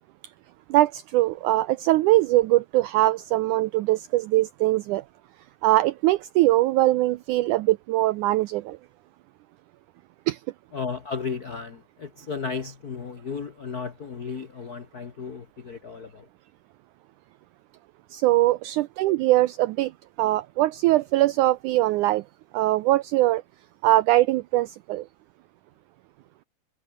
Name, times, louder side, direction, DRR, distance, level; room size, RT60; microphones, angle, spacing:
voice 1, 0.7-5.0 5.6-8.8 10.3-10.4 18.1-19.9 20.2-22.2 22.5-23.4 23.8-25.1, right 16 dB, 85° right, 1.8 m, -22 dB
voice 2, 10.7-16.3, left 5 dB, 75° left, 0.8 m, -34 dB
omnidirectional pair, 4.2 m